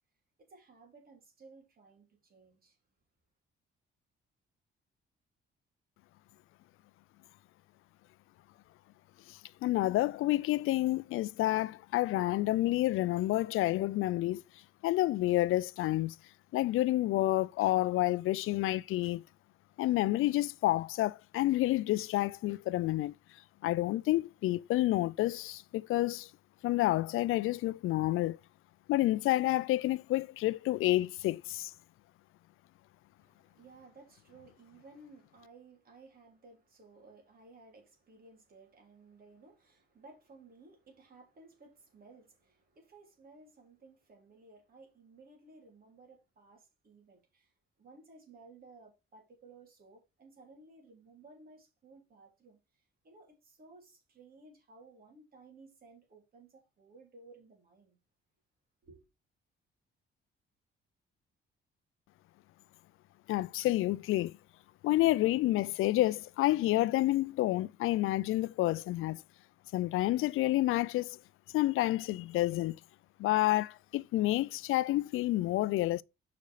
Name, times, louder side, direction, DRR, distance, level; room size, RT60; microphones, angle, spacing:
voice 1, 0.4-2.8 33.2-58.0 58.8-59.0, right 3 dB, 45° right, 3.5 m, -57 dB
voice 2, 9.3-14.4 14.8-16.2 16.5-19.2 19.8-23.1 23.6-26.3 26.6-28.4 28.9-31.7 63.3-64.4 64.8-69.2 69.7-71.2 71.5-72.8 73.2-76.0, left 16 dB, 80° left, 0.4 m, -29 dB
6.7 x 5.2 x 4.8 m
cardioid pair, 120°, 21 cm